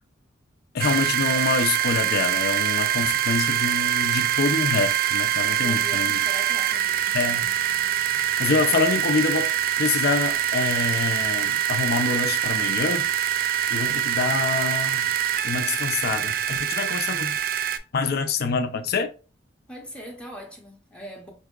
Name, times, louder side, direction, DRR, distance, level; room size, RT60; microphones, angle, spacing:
voice 1, 0.7-6.2 7.1-7.5 8.4-13.1 13.7-15.1 15.4-17.4 17.9-19.1, left 4 dB, 55° left, 0.5 m, -26 dB
sound 1, 0.8-17.8, right 11 dB, 50° right, 0.3 m, -24 dB
voice 2, 5.5-7.2 19.7-21.3, equal, 5° left, 0.7 m, -41 dB
4.7 x 2.7 x 2.3 m
head